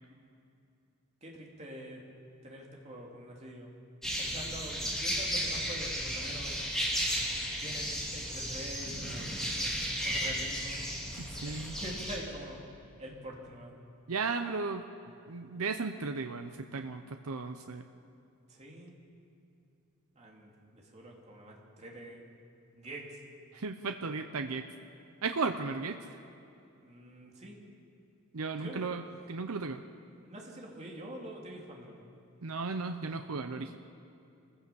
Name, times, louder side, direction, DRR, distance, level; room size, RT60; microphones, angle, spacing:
voice 1, 1.2-2.0 2.4-3.7 4.2-6.6 7.6-9.7 10.0-10.9 11.4-12.6 13.0-13.7 18.5-18.9 20.1-22.3 22.7-23.2 26.8-27.6 28.6-28.9 30.2-32.1, right 1 dB, 30° right, -1 dB, 2.9 m, -45 dB
sound 1, 4.0-12.2, equal, ahead, 3.3 m, -34 dB
voice 2, 11.2-11.8 14.1-14.8 15.3-17.8 23.5-24.7 25.2-26.1 28.3-29.8 32.4-33.8, right 4 dB, 80° right, 6 dB, 0.8 m, -35 dB
24.0 x 15.5 x 7.0 m, 2.7 s
head